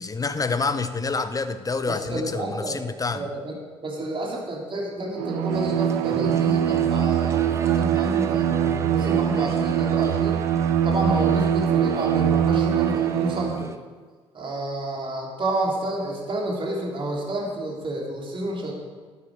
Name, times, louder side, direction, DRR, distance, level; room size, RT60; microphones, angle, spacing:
voice 1, 0.0-3.3, left 4 dB, 25° left, 11 dB, 1.1 m, -27 dB
voice 2, 1.9-2.8 3.1-3.5 3.8-10.4 10.8-13.7 14.3-18.7, right 1 dB, 35° right, -2 dB, 3.7 m, -30 dB
Bowed string instrument, 5.1-13.7, right 9 dB, 70° right, 0.7 m, -22 dB
sound 1, 5.5-13.8, right 3 dB, 20° right, 1.0 m, -38 dB
13.0 x 13.0 x 5.0 m, 1.4 s
figure-of-eight pair, 50°, 14 cm